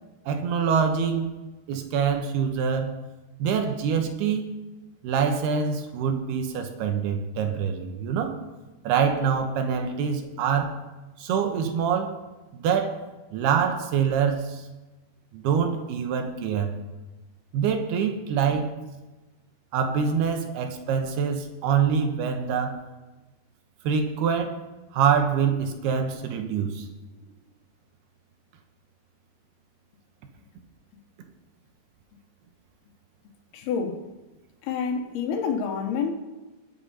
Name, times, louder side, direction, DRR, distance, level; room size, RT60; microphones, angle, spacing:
voice 1, 0.3-1.3 1.7-2.9 3.4-4.5 5.0-8.4 8.8-10.8 11.2-12.2 12.5-13.0 13.3-14.6 15.3-16.7 17.5-18.7 19.7-22.8 23.8-24.6 24.9-26.9, right 7 dB, 80° right, 3.1 m, -25 dB
voice 2, 33.5-34.1 34.6-36.1, left 6 dB, 75° left, 3.0 m, -28 dB
21.0 x 7.0 x 5.6 m
omnidirectional pair, 4.6 m